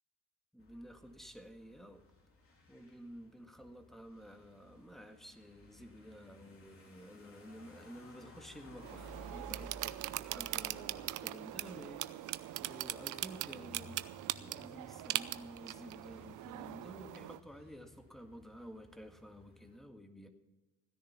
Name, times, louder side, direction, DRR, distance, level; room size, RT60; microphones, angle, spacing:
voice 1, 0.5-2.0 2.7-9.9 10.2-12.1 12.6-20.3, equal, ahead, 6 dB, 1.8 m, -52 dB
sound 1, 0.6-19.8, left 1 dB, 45° left, 3.5 m, -58 dB
sound 2, 8.8-17.4, right 15 dB, 85° right, 0.6 m, -41 dB
16.0 x 10.5 x 5.8 m, 1.1 s
cardioid pair, 90°, 30 cm